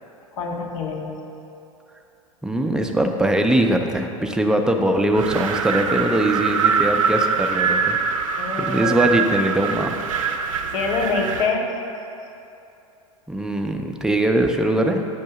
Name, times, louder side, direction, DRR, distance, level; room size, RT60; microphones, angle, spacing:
voice 1, 0.4-1.2 8.4-9.1 10.7-11.7, left 4 dB, 60° left, 1 dB, 0.8 m, -25 dB
voice 2, 2.4-10.0 13.3-15.0, right 1 dB, 5° right, 3 dB, 0.4 m, -21 dB
Wind, 5.1-11.6, right 6 dB, 70° right, 0.5 m, -23 dB
7.8 x 2.6 x 5.7 m, 2.9 s
hypercardioid pair, 90°, 18 cm